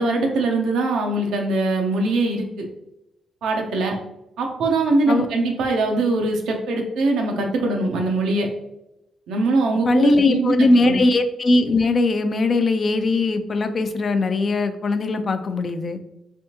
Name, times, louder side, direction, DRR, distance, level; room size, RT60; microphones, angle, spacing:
voice 1, 0.0-2.7 3.4-4.0 4.4-8.5 9.3-11.0, right 2 dB, 90° right, 2 dB, 0.7 m, -22 dB
voice 2, 9.9-16.0, left 2 dB, 45° left, 9 dB, 0.4 m, -20 dB
3.4 x 3.4 x 2.8 m, 0.89 s
cardioid pair, 90°, 0 cm